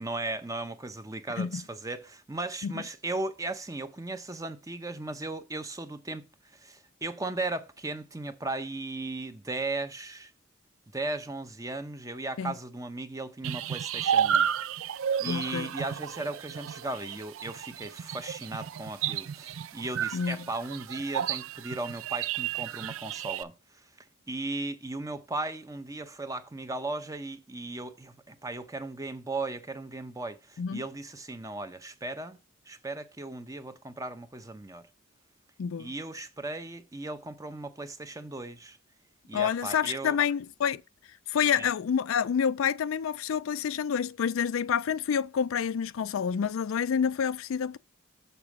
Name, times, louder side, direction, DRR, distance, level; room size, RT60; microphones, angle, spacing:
voice 1, 0.0-6.2 6.5-10.3 10.9-14.5 15.2-23.8 24.3-32.4 32.7-34.8 35.8-38.8 39.3-40.2 41.5-41.7, right 2 dB, 15° right, 0.7 m, -36 dB
sound 1, 13.4-23.4, right 9 dB, 75° right, 0.4 m, -32 dB
voice 2, 15.3-15.7 20.1-20.4 30.6-30.8 35.6-35.9 39.3-40.8 41.3-47.8, left 7 dB, 70° left, 0.4 m, -28 dB
6.9 x 4.3 x 6.0 m
head